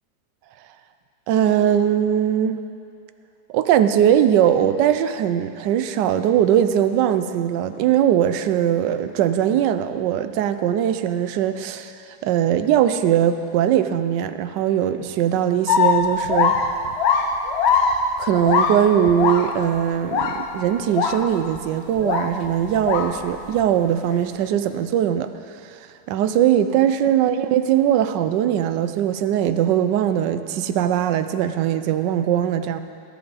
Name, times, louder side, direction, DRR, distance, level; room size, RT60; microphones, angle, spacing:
voice 1, 1.3-2.6 3.5-11.9 12.2-16.6 18.2-25.3 25.7-25.8 26.1-32.8, right 10 dB, 85° right, 11 dB, 1.2 m, -20 dB
sound 1, 15.7-19.8 20.1-20.6 20.9-21.6 22.0-23.6 24.1-24.2, left 5 dB, 60° left, 0.7 m, -22 dB
18.5 x 7.9 x 4.0 m, 2.6 s
omnidirectional pair, 1.9 m